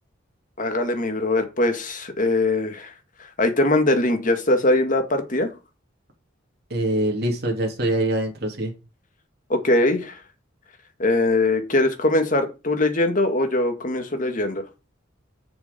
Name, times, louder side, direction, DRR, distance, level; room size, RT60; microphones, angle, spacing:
voice 1, 0.6-2.9 3.4-5.5 9.5-10.2 11.0-14.6, left 2 dB, 40° left, 6 dB, 1.9 m, -21 dB
voice 2, 6.7-8.7, right 1 dB, 55° right, 1 dB, 3.1 m, -24 dB
6.8 x 6.8 x 5.4 m, 0.29 s
head